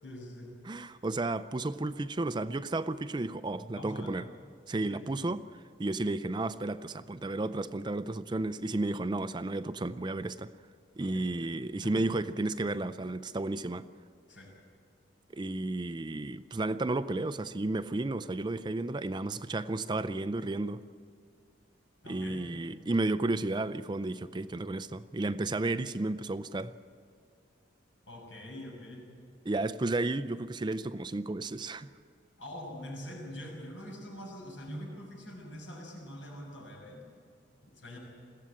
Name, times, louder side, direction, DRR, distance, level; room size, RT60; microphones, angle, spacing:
voice 1, 0.0-0.5 3.7-4.2 4.8-5.2 11.0-11.3 11.8-12.0 14.3-14.5 22.0-22.5 28.1-29.1 32.4-37.0 37.7-38.0, left 1 dB, 80° left, 6.7 m, -44 dB
voice 2, 0.6-4.2 4.7-10.5 11.0-13.9 15.3-20.8 22.1-26.7 29.5-31.9 34.7-34.9, right 2 dB, 25° right, 0.4 m, -33 dB
21.5 x 15.5 x 8.5 m
head